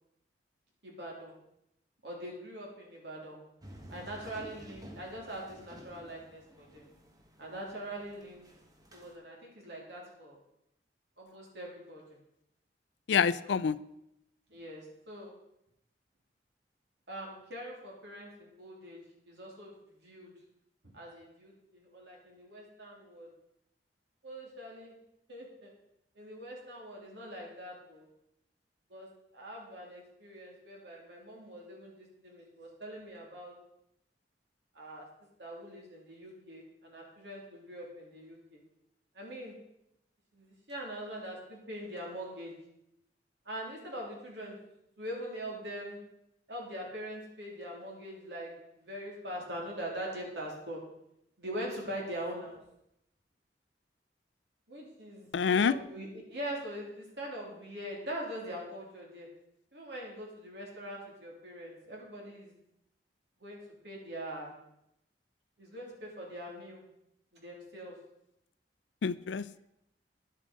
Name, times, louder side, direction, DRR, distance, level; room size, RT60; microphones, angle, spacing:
voice 1, 0.8-1.3 2.0-3.4 3.9-6.9 7.4-8.5 8.9-10.4 11.2-12.2 13.4-13.5 14.5-15.4 17.1-20.3 20.8-23.3 24.2-24.9 25.3-25.7 26.1-28.1 28.9-33.5 34.7-35.0 35.4-38.6 39.1-39.5 40.3-42.5 43.4-44.6 45.0-46.0 46.5-48.5 48.8-50.8 51.4-52.6 54.7-59.3 59.7-62.5 63.4-64.6 65.6-66.8 67.3-68.0, equal, 75° right, -2 dB, 3.2 m, -43 dB
sound 1, 3.6-9.1, equal, 20° right, 1.4 m, -52 dB
voice 2, 13.1-13.8 55.3-55.8 69.0-69.6, left 6 dB, 90° left, 18 dB, 0.4 m, -27 dB
10.5 x 7.6 x 5.2 m, 0.81 s
head